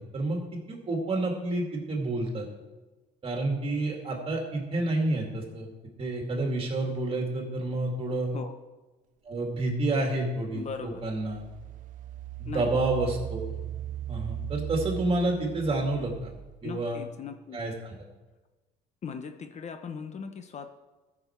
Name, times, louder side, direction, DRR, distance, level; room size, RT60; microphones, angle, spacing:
voice 1, 0.0-2.5 3.2-5.7 6.0-8.3 9.2-11.4 12.4-13.5 14.1-16.3 16.6-17.0 17.5-18.0, right 2 dB, 35° right, 1 dB, 2.4 m, -29 dB
voice 2, 10.5-11.0 12.5-12.7 16.6-17.6 19.0-20.7, left 6 dB, 40° left, 7 dB, 0.9 m, -39 dB
Engine, 10.7-16.6, right 11 dB, 50° right, 0.4 m, -38 dB
13.5 x 6.2 x 4.5 m, 1.2 s
cardioid pair, 110°, 17 cm